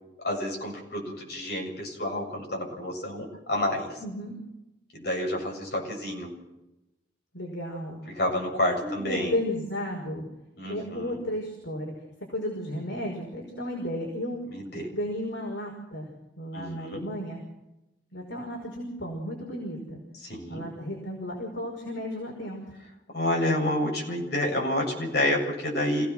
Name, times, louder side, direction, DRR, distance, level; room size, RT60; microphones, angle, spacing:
voice 1, 0.2-3.9 4.9-6.3 8.1-9.4 10.6-11.2 14.5-14.9 16.5-17.0 20.2-20.7 23.1-26.1, left 1 dB, 55° left, 0 dB, 7.6 m, -29 dB
voice 2, 4.0-4.4 7.3-8.1 8.8-10.2 10.6-11.9 12.3-14.4 14.9-16.1 16.4-17.4 18.1-20.0 20.5-22.6 25.9-26.0, left 1 dB, 80° left, -1 dB, 5.5 m, -33 dB
28.0 x 17.0 x 6.4 m, 0.93 s
head